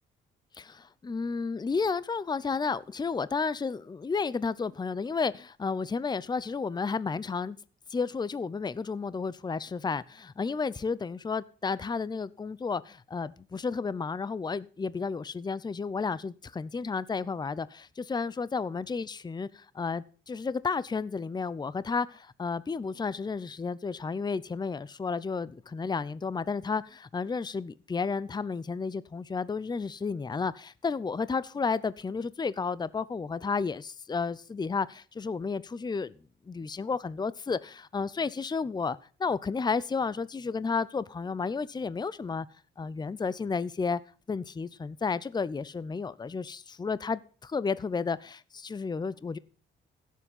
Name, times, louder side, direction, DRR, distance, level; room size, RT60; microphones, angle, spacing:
voice 1, 0.5-7.6 7.9-36.1 36.5-42.5 42.8-44.0 44.3-49.4, left 5 dB, 20° left, 0.7 m, -32 dB
16.0 x 7.5 x 5.5 m
cardioid pair, 90°, 20 cm